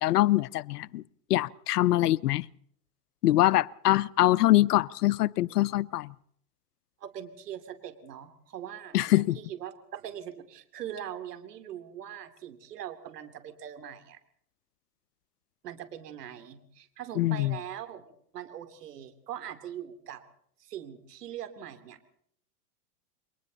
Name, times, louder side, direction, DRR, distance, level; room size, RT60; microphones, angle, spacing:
voice 1, 0.0-1.0 1.3-2.5 3.2-6.1 8.9-9.4 17.2-17.6, left 16 dB, 75° left, 19 dB, 0.8 m, -24 dB
voice 2, 7.0-14.2 15.6-20.2 20.6-22.2, right 10 dB, 80° right, 9 dB, 3.0 m, -42 dB
29.5 x 23.0 x 4.0 m, 0.66 s
hypercardioid pair, 125°, 47 cm